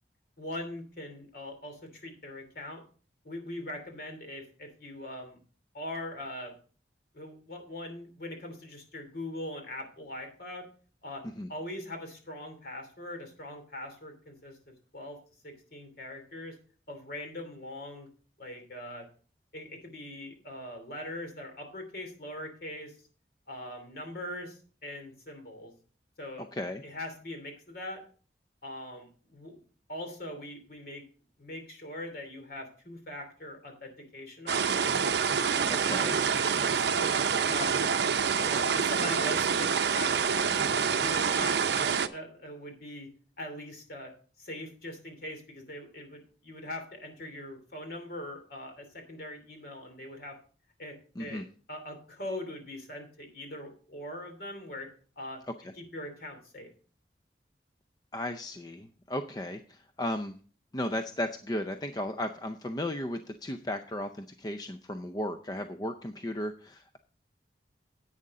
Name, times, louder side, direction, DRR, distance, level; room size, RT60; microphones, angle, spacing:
voice 1, 0.4-2.8 3.2-5.4 5.7-6.5 7.1-10.6 11.0-11.2 11.5-14.6 14.9-15.2 15.4-16.5 16.9-18.1 18.4-19.1 19.5-22.9 23.5-25.7 26.2-26.5 26.8-28.0 28.6-29.6 29.9-31.0 31.4-34.7 36.5-37.2 37.5-37.8 38.4-40.5 40.9-43.1 43.4-44.1 44.4-50.4 50.8-51.4 51.7-54.9 55.2-55.4 55.8-56.7, left 1 dB, 55° left, 5 dB, 3.1 m, -41 dB
voice 2, 26.4-26.8 35.7-36.2 51.2-51.5 55.6-55.7 58.1-60.4 60.7-67.0, left 1 dB, 20° left, 7 dB, 0.5 m, -35 dB
sound 1, 34.5-42.1, right 6 dB, 75° right, 0.6 m, -27 dB
10.5 x 8.6 x 3.7 m, 0.40 s
head